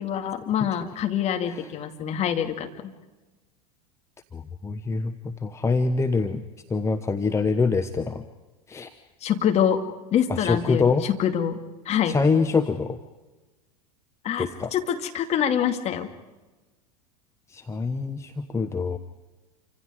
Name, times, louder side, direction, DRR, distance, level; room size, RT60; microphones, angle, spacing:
voice 1, 0.0-2.9 9.2-9.8 10.1-11.6 11.9-12.2 14.2-14.5 14.7-16.1, left 9 dB, 30° left, 5 dB, 2.4 m, -25 dB
voice 2, 4.3-6.4 6.7-8.2 8.7-8.9 10.3-11.1 12.1-13.0 14.4-14.7 17.5-19.0, left 4 dB, 15° left, 7 dB, 1.0 m, -25 dB
28.5 x 25.5 x 4.9 m, 1.2 s
figure-of-eight pair, 85°, 20 cm